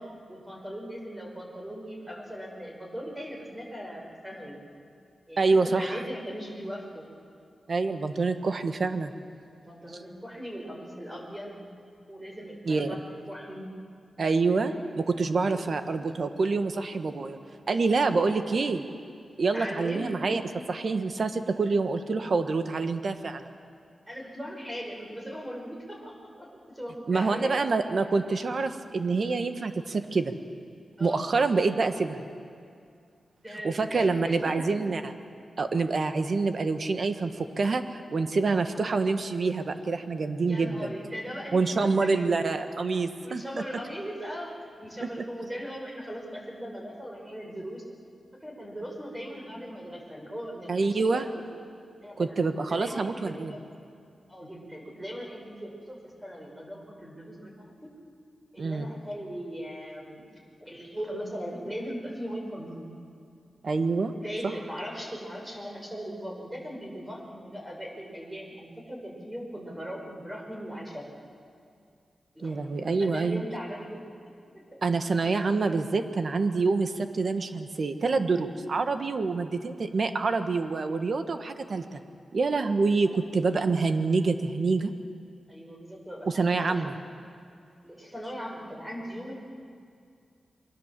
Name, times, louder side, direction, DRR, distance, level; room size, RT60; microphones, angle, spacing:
voice 1, 0.0-4.6 5.3-7.1 9.5-11.7 12.1-13.7 15.4-15.8 19.4-20.2 24.1-27.7 31.0-31.4 33.4-34.9 40.4-42.5 43.2-47.8 48.4-51.4 52.0-53.6 54.3-57.5 57.8-57.9 58.5-60.3 60.6-63.0 64.2-71.0 72.3-74.0 74.5-74.8 83.0-83.2 85.5-87.1 87.8-89.4, equal, 10° right, 0 dB, 5.5 m, -39 dB
voice 2, 5.4-6.0 7.7-9.1 12.6-12.9 14.2-17.4 17.7-18.8 19.4-20.4 20.7-23.5 27.1-30.3 31.0-32.2 33.6-35.1 35.6-40.9 41.5-43.4 45.0-45.1 50.7-51.3 52.2-53.6 58.6-58.9 63.6-64.1 72.4-73.4 74.8-82.0 82.3-84.9 86.3-86.9, right 4 dB, 50° right, 8 dB, 1.4 m, -26 dB
28.5 x 22.5 x 7.6 m, 2.4 s
wide cardioid pair, 115°, 0 cm